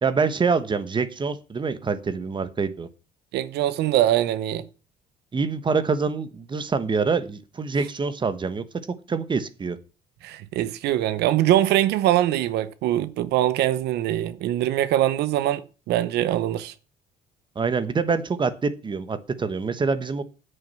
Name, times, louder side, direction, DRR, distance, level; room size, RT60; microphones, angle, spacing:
voice 1, 0.0-2.9 5.3-8.6 9.1-9.8 17.5-20.2, right 4 dB, 30° right, 1.3 m, -25 dB
voice 2, 3.3-4.6 10.2-16.7, right 13 dB, 80° right, 0.9 m, -23 dB
8.7 x 6.7 x 7.5 m
cardioid pair, 110°, 17 cm